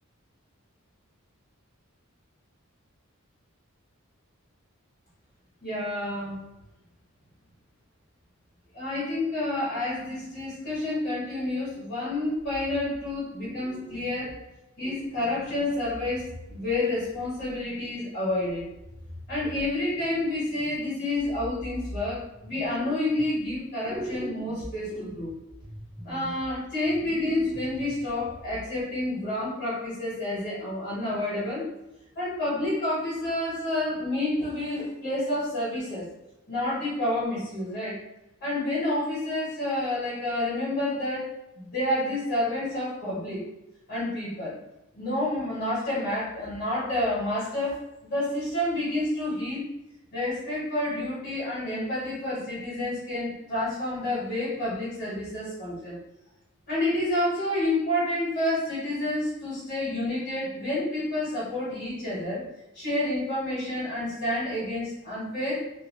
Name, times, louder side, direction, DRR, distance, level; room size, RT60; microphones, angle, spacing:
voice 1, 5.6-6.4 8.7-14.4 14.8-18.7 19.3-25.3 26.0-31.7 32.1-36.1 36.5-38.0 38.4-41.3 41.6-43.4 43.9-44.6 44.9-49.7 50.1-56.0 56.7-62.4 62.7-65.7, left 1 dB, 45° left, -9 dB, 1.3 m, -29 dB
sound 1, 12.4-13.2 13.4-14.4 14.8-17.6 18.5-20.8 21.1-23.6 23.8-28.8, equal, 10° right, 0.4 m, -42 dB
2.7 x 2.3 x 2.9 m, 0.91 s
head